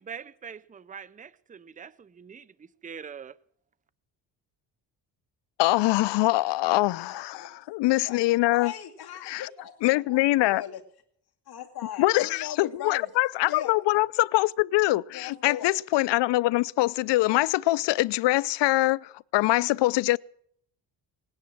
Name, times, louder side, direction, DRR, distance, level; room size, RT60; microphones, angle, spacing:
voice 1, 0.0-3.4, right 7 dB, 20° right, 0.5 m, -43 dB
voice 2, 5.6-8.7 9.2-9.5 9.8-10.6 12.0-20.2, left 18 dB, 85° left, 0.5 m, -24 dB
voice 3, 7.0-7.5 8.0-8.2 8.5-10.8 11.5-13.1 13.5-13.7 15.1-15.7, left 10 dB, 65° left, 2.5 m, -39 dB
18.5 x 9.8 x 7.6 m
cardioid pair, 110°, 41 cm